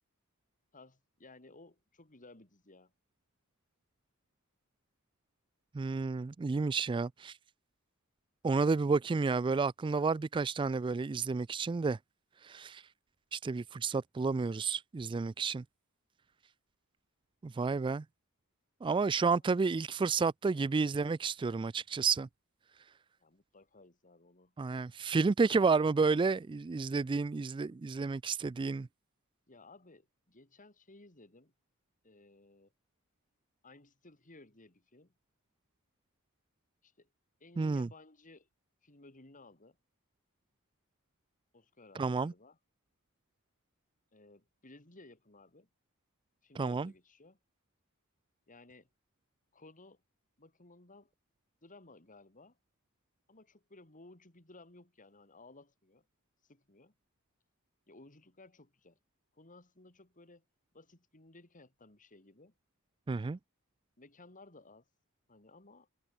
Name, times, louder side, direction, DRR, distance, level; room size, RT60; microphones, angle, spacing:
voice 1, 0.7-2.9 23.2-24.5 29.5-31.5 32.0-32.7 33.6-35.1 36.8-37.1 37.4-38.5 38.8-39.8 41.5-42.6 44.1-45.7 46.4-47.4 48.5-48.9 49.5-50.0 50.4-51.1 51.6-52.6 53.3-56.0 56.4-56.9 57.9-59.0 59.3-60.4 60.7-62.5 64.0-64.9 65.3-65.9, left 2 dB, 35° left, 3.3 m, -58 dB
voice 2, 5.7-7.4 8.4-12.0 12.4-12.8 13.3-15.6 17.4-18.0 18.8-22.3 24.6-28.9 37.6-37.9 42.0-42.3 46.6-46.9 63.1-63.4, right 4 dB, 20° right, 0.3 m, -31 dB
head